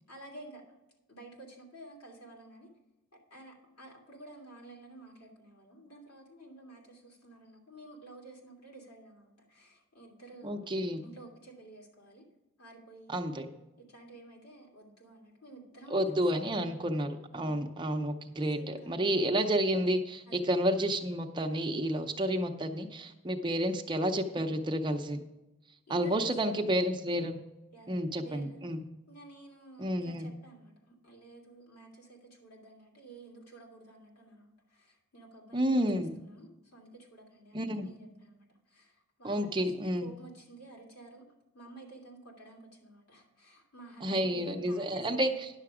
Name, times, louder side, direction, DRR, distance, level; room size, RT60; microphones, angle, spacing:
voice 1, 0.1-0.6 1.1-2.7 3.3-12.3 12.6-13.2 13.8-16.0 16.3-16.7 17.3-17.5 18.5-19.0 20.3-20.4 25.9-26.7 27.7-28.6 29.1-39.7 40.0-41.2 41.5-45.4, right 2 dB, 85° left, 0 dB, 2.8 m, -52 dB
voice 2, 10.4-11.0 13.1-13.5 15.9-25.2 25.9-27.4 27.9-28.8 29.8-30.3 35.5-36.2 37.5-37.9 39.2-40.1 44.0-45.3, equal, 20° right, 4 dB, 0.6 m, -30 dB
10.5 x 6.8 x 4.8 m, 1.0 s
head